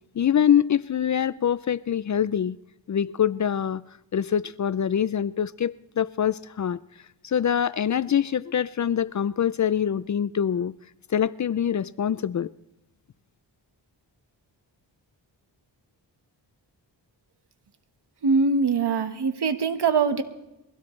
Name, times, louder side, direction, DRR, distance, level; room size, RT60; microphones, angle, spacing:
voice 1, 0.1-2.6 2.9-3.8 4.1-6.8 7.2-10.7 11.1-12.5, left 9 dB, 45° left, 0.5 m, -24 dB
voice 2, 18.2-20.2, right 4 dB, 65° right, 1.5 m, -22 dB
22.5 x 16.5 x 3.2 m
cardioid pair, 70°, 43 cm